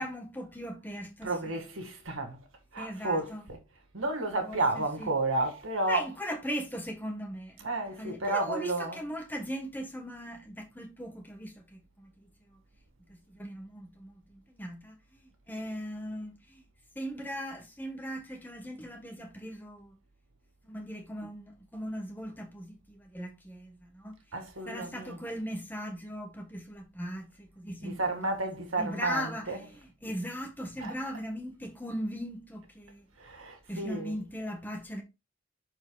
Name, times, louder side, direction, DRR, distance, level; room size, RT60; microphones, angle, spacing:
voice 1, 0.0-1.3 2.8-3.4 4.4-4.6 5.0-5.1 5.9-7.6 8.0-12.1 13.1-15.0 15.5-16.6 17.0-20.0 20.6-24.2 24.7-28.0 28.8-29.5 30.0-33.0 33.7-35.0, equal, 10° left, 1.1 m, -38 dB
voice 2, 1.2-2.4 2.7-3.6 3.9-6.1 7.6-9.1 24.3-25.2 27.8-29.7 30.8-30.9 33.2-34.2, right 2 dB, 70° right, 2.1 m, -32 dB
12.5 x 4.6 x 2.3 m
head